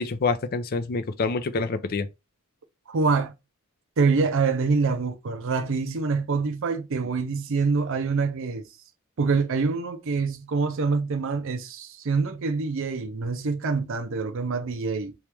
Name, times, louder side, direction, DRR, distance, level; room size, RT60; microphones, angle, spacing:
voice 1, 0.0-2.1, left 4 dB, 45° left, 0.5 m, -27 dB
voice 2, 2.9-3.3 4.0-8.6 9.2-15.1, right 4 dB, 65° right, 0.6 m, -25 dB
3.1 x 3.0 x 3.3 m
head